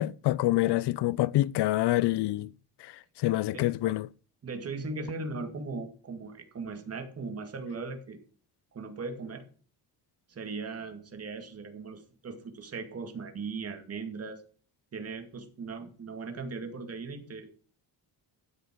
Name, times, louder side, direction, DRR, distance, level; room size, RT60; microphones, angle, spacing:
voice 1, 0.0-2.5 2.8-2.9 3.2-4.1, left 16 dB, 70° left, 0.6 m, -26 dB
voice 2, 4.4-8.2 8.7-9.5 10.3-14.4 14.9-17.5, right 4 dB, 35° right, 2.4 m, -38 dB
13.0 x 7.9 x 6.2 m
cardioid pair, 145°, 42 cm